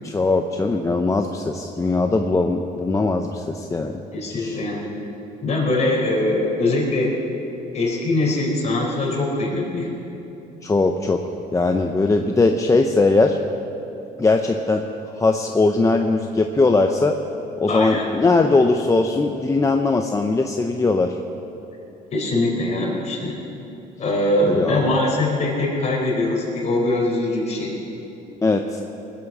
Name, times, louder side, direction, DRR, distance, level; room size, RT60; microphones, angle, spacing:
voice 1, 0.0-3.9 4.3-4.6 10.6-11.2 11.5-13.4 14.2-14.8 15.2-17.2 17.6-21.2 24.5-24.9 28.4-28.8, left 3 dB, 20° left, 4 dB, 0.7 m, -20 dB
voice 2, 4.1-4.8 5.4-7.3 7.7-10.0 17.7-18.1 22.1-23.3 24.0-27.7, left 2 dB, 40° left, -2 dB, 4.4 m, -22 dB
20.5 x 8.2 x 7.3 m, 2.9 s
cardioid pair, 110°, 17 cm